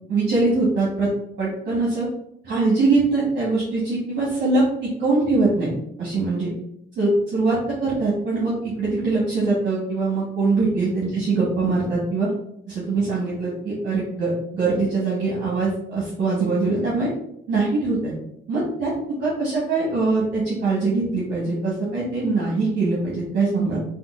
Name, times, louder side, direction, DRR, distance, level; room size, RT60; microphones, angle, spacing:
voice 1, 0.1-1.1 1.4-2.1 2.4-5.7 6.0-6.5 7.0-12.3 12.7-17.1 17.5-18.1 18.5-23.8, right 3 dB, 60° right, -7 dB, 1.2 m, -22 dB
3.6 x 2.3 x 2.4 m, 0.74 s
cardioid pair, 90°, 20 cm